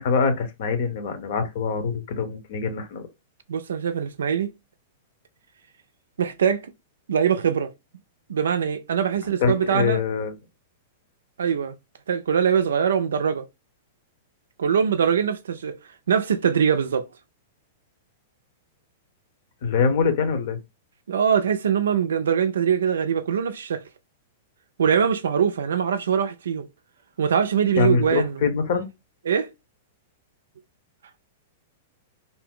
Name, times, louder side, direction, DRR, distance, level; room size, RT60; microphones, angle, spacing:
voice 1, 0.0-3.1 9.4-10.3 19.6-20.6 27.8-28.9, left 5 dB, 60° left, 0.8 m, -24 dB
voice 2, 3.5-4.5 6.2-6.7 7.1-7.7 8.3-10.0 11.4-11.7 12.1-13.5 14.6-15.8 16.1-17.0 21.1-23.8 24.8-26.7 27.2-28.4 29.3-29.5, right 7 dB, 75° right, 0.4 m, -22 dB
2.6 x 2.0 x 3.6 m
hypercardioid pair, 110°, 0 cm